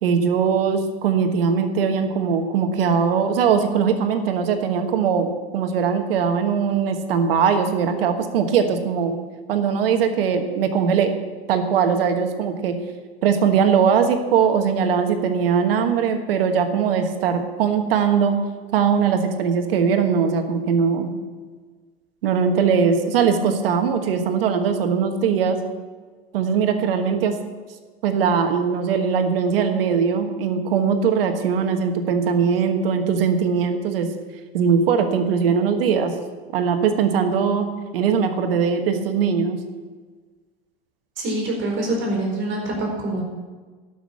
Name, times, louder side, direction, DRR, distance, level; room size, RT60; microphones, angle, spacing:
voice 1, 0.0-9.2 9.5-11.2 11.5-12.8 13.2-18.4 18.7-21.1 22.2-25.6 26.3-27.4 28.0-34.1 34.5-36.1 36.5-37.7 37.9-39.6, right 6 dB, 75° right, 7 dB, 1.4 m, -20 dB
voice 2, 41.2-43.2, right 1 dB, 40° right, -1 dB, 4.3 m, -25 dB
12.5 x 6.2 x 7.2 m, 1.4 s
hypercardioid pair, 100°, 29 cm